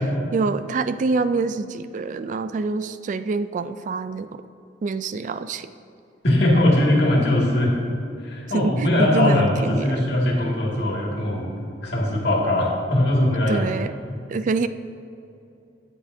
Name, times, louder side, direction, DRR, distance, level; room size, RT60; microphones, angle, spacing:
voice 1, 0.3-4.4 4.8-5.7 8.5-10.0 13.5-13.9 14.3-14.7, right 4 dB, 45° right, 11 dB, 0.3 m, -26 dB
voice 2, 6.2-7.7 8.2-13.6, left 1 dB, 65° left, -3 dB, 2.1 m, -20 dB
17.0 x 7.2 x 2.7 m, 2.7 s
head